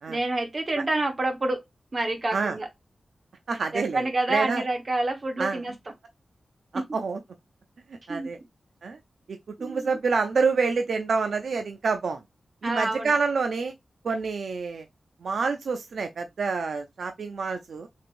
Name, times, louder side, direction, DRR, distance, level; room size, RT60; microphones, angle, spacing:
voice 1, 0.1-1.6 1.9-2.7 3.7-5.7 8.1-8.3 9.6-10.0 12.6-13.1, right 2 dB, 40° right, 1.1 m, -28 dB
voice 2, 3.5-4.6 5.4-5.6 6.7-7.2 8.1-8.4 8.8-9.0 9.3-12.2 12.6-13.7 14.0-14.9 15.2-17.9, right 4 dB, 85° right, 0.4 m, -27 dB
3.3 x 3.3 x 2.5 m
wide cardioid pair, 90°, 0 cm